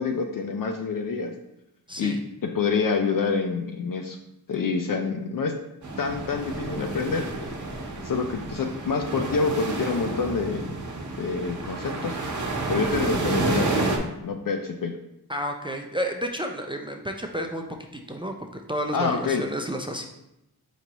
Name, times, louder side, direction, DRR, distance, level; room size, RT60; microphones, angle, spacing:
voice 1, 0.0-1.3 2.0-2.2 2.4-4.2 4.5-5.6 6.0-7.6 8.0-10.7 11.2-12.2 12.7-14.9 18.9-19.4, left 5 dB, 60° left, 5 dB, 0.5 m, -27 dB
voice 2, 1.9-2.2 15.3-20.1, equal, 15° right, 3 dB, 0.4 m, -31 dB
sound 1, 5.8-14.0, right 2 dB, 50° right, 0.8 m, -30 dB
4.5 x 2.8 x 3.9 m, 0.86 s
cardioid pair, 40°, 39 cm